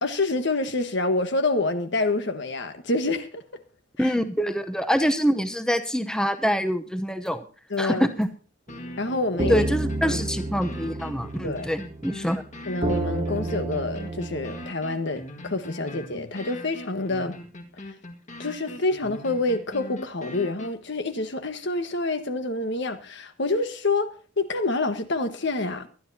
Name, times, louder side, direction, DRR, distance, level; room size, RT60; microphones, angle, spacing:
voice 1, 0.0-3.4 4.0-4.1 7.7-8.1 9.0-9.7 10.0-10.2 11.4-11.7 12.6-17.4 18.4-25.9, left 2 dB, 65° left, 1.5 m, -27 dB
voice 2, 4.0-7.4 7.8-8.3 9.5-12.4, equal, 5° left, 0.8 m, -25 dB
sound 1, 7.3-7.4 7.7-7.8 8.2-8.3 8.7-20.7, left 1 dB, 40° left, 2.0 m, -41 dB
sound 2, 8.7-8.8 9.4-14.7, right 2 dB, 30° right, 0.8 m, -30 dB
23.5 x 10.5 x 2.8 m
head